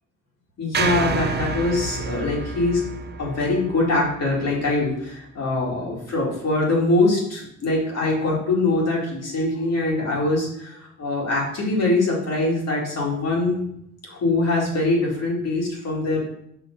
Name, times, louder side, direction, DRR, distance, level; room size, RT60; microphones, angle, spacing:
voice 1, 0.6-2.8 3.2-13.7 14.0-16.2, left 2 dB, 55° left, -3 dB, 2.4 m, -23 dB
sound 1, 0.7-5.0, right 5 dB, 35° right, 0.5 m, -29 dB
5.8 x 3.2 x 5.6 m, 0.75 s
cardioid pair, 90°, 30 cm